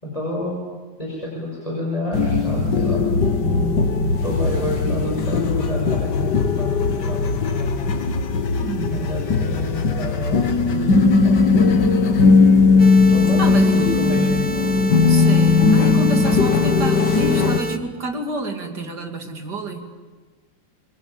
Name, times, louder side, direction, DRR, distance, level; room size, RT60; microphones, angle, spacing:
voice 1, 0.0-0.6 1.0-8.1 8.9-11.8 13.1-14.5, left 1 dB, 15° left, -3 dB, 6.6 m, -29 dB
sound 1, 2.1-17.6, left 4 dB, 65° left, 2.1 m, -18 dB
voice 2, 8.6-9.1 13.4-13.9 15.1-19.9, right 2 dB, 60° right, 4 dB, 3.3 m, -28 dB
sound 2, 12.8-17.8, right 4 dB, 25° right, 1.1 m, -29 dB
27.5 x 23.0 x 8.9 m, 1.4 s
omnidirectional pair, 2.1 m